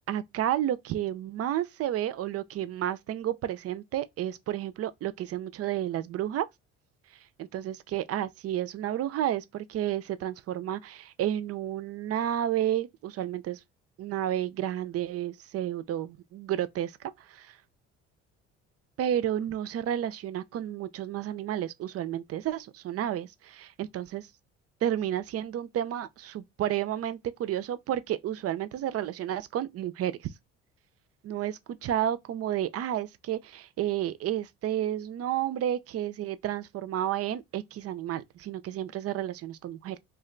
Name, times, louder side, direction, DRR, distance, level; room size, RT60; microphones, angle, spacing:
voice 1, 0.1-6.5 7.4-13.6 14.0-16.9 17.3-17.6 19.0-24.3 24.8-30.1 31.2-40.0, right 11 dB, 45° right, 0.5 m, -31 dB
2.4 x 2.1 x 3.8 m
hypercardioid pair, 65°, 33 cm